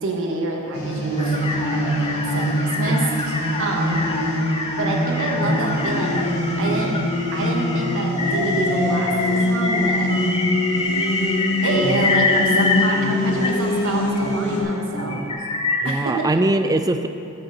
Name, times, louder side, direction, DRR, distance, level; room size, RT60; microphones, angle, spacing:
voice 1, 0.0-4.0 4.8-6.9 7.3-10.1 11.6-15.2 15.8-16.3, right 2 dB, 60° right, 0 dB, 1.1 m, -27 dB
sound 1, 0.7-14.6, left 1 dB, 75° left, 1.8 m, -24 dB
sound 2, 1.2-13.1 13.4-14.4 15.0-16.1, left 3 dB, 25° left, 0.7 m, -26 dB
sound 3, 5.3-11.0 11.7-15.3, left 1 dB, ahead, 1.8 m, -34 dB
voice 2, 15.8-17.1, right 2 dB, 15° right, 9 dB, 0.4 m, -22 dB
7.7 x 6.5 x 7.3 m, 2.6 s
head